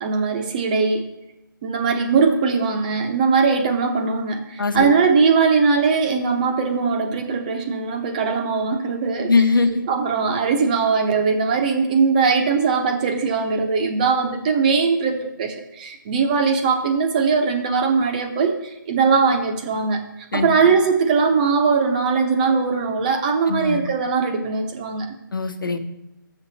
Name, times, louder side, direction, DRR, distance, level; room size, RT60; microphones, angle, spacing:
voice 1, 0.0-1.1 1.6-9.4 9.9-20.0 20.3-25.1, right 5 dB, 20° right, 5 dB, 0.9 m, -20 dB
voice 2, 9.2-9.8 20.3-20.5 23.5-23.8 25.3-25.8, left 4 dB, 70° left, 8 dB, 1.2 m, -20 dB
7.2 x 7.1 x 4.2 m, 0.93 s
figure-of-eight pair, 160°, 11 cm